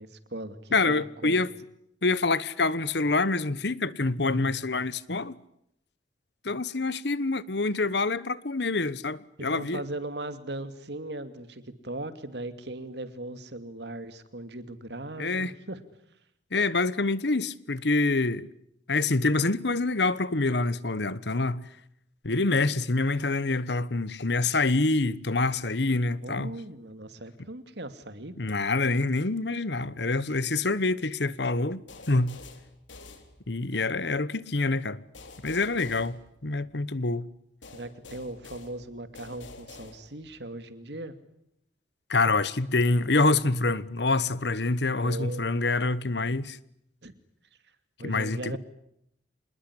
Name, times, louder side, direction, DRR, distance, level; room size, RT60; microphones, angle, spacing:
voice 1, 0.0-1.4 9.4-15.8 26.2-28.3 37.7-41.2 44.9-45.6 46.1-46.3 47.0-47.1 48.0-48.6, right 1 dB, 65° right, 2.5 m, -39 dB
voice 2, 0.7-1.5 2.0-5.4 6.4-9.8 15.2-15.5 16.5-18.5 18.9-21.7 22.2-26.5 28.4-32.4 33.5-35.0 35.4-37.3 42.1-46.6 48.0-48.6, left 3 dB, 65° left, 1.2 m, -26 dB
sound 1, 31.9-33.8 35.1-36.9 37.6-40.4, left 3 dB, 85° left, 3.7 m, -48 dB
26.0 x 21.0 x 10.0 m
head